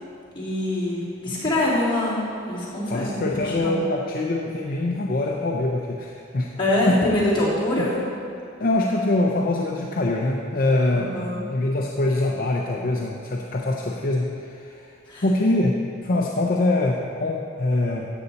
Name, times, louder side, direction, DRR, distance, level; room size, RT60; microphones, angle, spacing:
voice 1, 0.3-2.2 2.5-3.8 6.6-8.0 10.9-11.4 15.1-15.2, left 1 dB, 25° left, -8 dB, 3.0 m, -24 dB
voice 2, 2.9-6.5 6.9-7.0 8.6-11.2 11.5-14.9 15.2-18.1, left 2 dB, 45° left, 0 dB, 0.7 m, -24 dB
13.5 x 8.0 x 4.2 m, 2.5 s
head